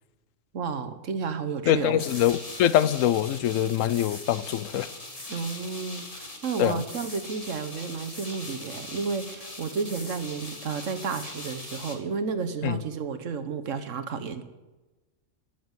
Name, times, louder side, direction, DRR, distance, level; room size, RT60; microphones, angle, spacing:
voice 1, 0.5-2.0 5.3-14.4, right 5 dB, 80° right, 1.5 m, -32 dB
voice 2, 1.7-4.9 6.6-6.8 12.6-12.8, left 11 dB, 90° left, 1.0 m, -24 dB
sound 1, 2.0-12.0, left 2 dB, 30° left, 1.8 m, -41 dB
13.5 x 7.2 x 9.0 m
omnidirectional pair, 1.3 m